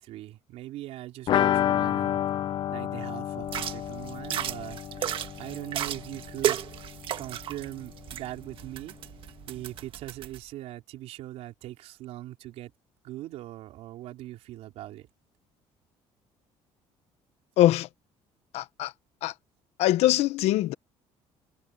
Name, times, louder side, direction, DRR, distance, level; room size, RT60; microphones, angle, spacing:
voice 1, 0.0-2.2 2.7-5.0 5.4-6.6 7.2-9.0 9.5-12.7 13.0-15.1, right 15 dB, 70° right, 3.7 m, -40 dB
sound 1, 1.3-6.9 7.1-7.2 7.5-7.6, left 11 dB, 45° left, 0.5 m, -29 dB
sound 2, 3.4-10.4, right 10 dB, 50° right, 1.4 m, -34 dB
voice 2, 17.6-17.9 18.5-18.9 19.2-19.3 19.8-20.7, left 14 dB, 70° left, 1.0 m, -22 dB
cardioid pair, 150°, 11 cm